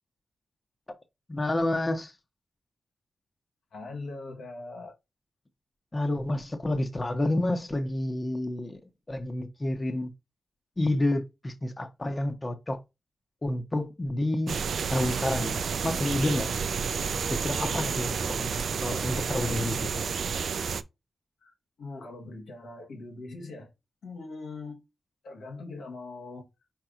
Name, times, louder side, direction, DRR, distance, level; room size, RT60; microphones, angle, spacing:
voice 1, 1.3-2.1 5.9-8.8 9.1-10.1 10.8-12.8 13.4-14.6 14.9-16.5 17.3-18.5 18.8-19.9, left 1 dB, 30° left, 1.0 m, -29 dB
voice 2, 3.7-4.9 18.2-18.3 21.4-23.7 24.0-24.8 25.2-26.4, left 3 dB, 85° left, 1.4 m, -41 dB
sound 1, 14.5-20.8, right 6 dB, 75° right, 0.4 m, -30 dB
4.6 x 4.4 x 2.5 m
cardioid pair, 50°, 0 cm